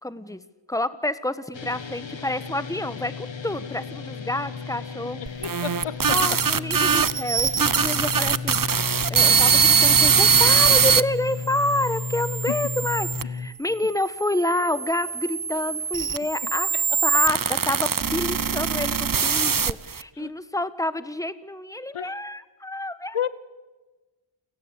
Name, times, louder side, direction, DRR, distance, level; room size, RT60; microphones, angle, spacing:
voice 1, 0.0-0.4 0.7-5.5 6.1-8.6 9.1-16.7 17.0-23.2, left 1 dB, 5° left, 13 dB, 1.3 m, -28 dB
sound 1, 1.5-13.5, left 5 dB, 60° left, 1.5 m, -34 dB
voice 2, 5.2-6.2 12.5-12.6 16.7-16.8 20.2-20.3 21.9-22.1 23.1-23.3, left 9 dB, 80° left, 17 dB, 0.9 m, -31 dB
sound 2, 5.3-11.0 11.7-13.2 14.0-20.0, right 6 dB, 40° right, 0.8 m, -22 dB
30.0 x 17.0 x 8.4 m, 1.3 s
wide cardioid pair, 50°, 50 cm